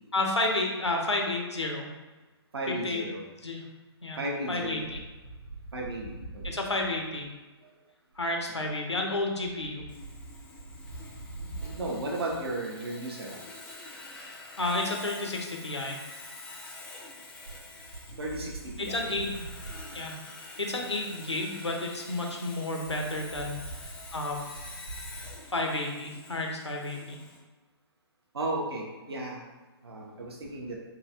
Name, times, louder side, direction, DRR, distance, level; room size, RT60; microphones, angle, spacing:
voice 1, 0.1-1.9 2.7-3.0 3.4-3.6 4.0-4.2 4.5-5.0 6.4-7.3 8.2-9.9 14.6-16.0 18.8-19.5 19.9-20.2 20.6-24.4 25.5-27.2, left 2 dB, 90° left, 1 dB, 0.7 m, -31 dB
voice 2, 2.5-3.2 4.2-4.9 5.7-6.6 11.4-13.4 18.2-19.2 20.7-20.9 28.3-29.4 29.8-30.8, right 2 dB, 65° right, -2 dB, 0.9 m, -34 dB
Sawing, 9.9-27.4, left 3 dB, 10° left, 0.4 m, -46 dB
3.9 x 2.3 x 2.7 m, 1.2 s
figure-of-eight pair, 130°, 14 cm